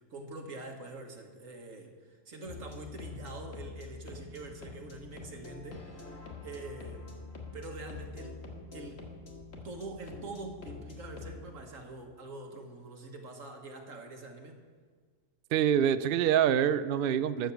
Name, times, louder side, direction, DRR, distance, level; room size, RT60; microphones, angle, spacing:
voice 1, 0.1-7.2 7.5-8.4 8.7-9.1 9.6-14.6, right 2 dB, 85° right, 4 dB, 1.8 m, -45 dB
sound 1, 2.4-11.4, left 3 dB, 85° left, 2.0 m, -46 dB
voice 2, 15.5-17.5, right 9 dB, 65° right, 13 dB, 0.6 m, -26 dB
13.0 x 7.8 x 7.1 m, 1.5 s
omnidirectional pair, 1.3 m